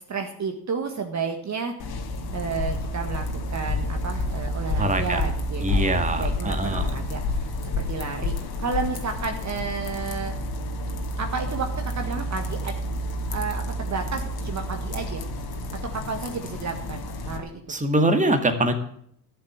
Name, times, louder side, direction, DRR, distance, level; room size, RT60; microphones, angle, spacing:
voice 1, 0.0-1.7 2.3-10.3 11.2-12.7 13.3-15.2 15.8-17.6, right 5 dB, 35° right, 4 dB, 1.7 m, -32 dB
sound 1, 1.8-17.4, left 1 dB, 50° left, 2.4 m, -29 dB
voice 2, 4.8-5.2 5.6-6.8 17.7-18.7, right 1 dB, 15° right, 6 dB, 2.1 m, -23 dB
11.5 x 7.3 x 8.8 m, 0.66 s
hypercardioid pair, 70°, 48 cm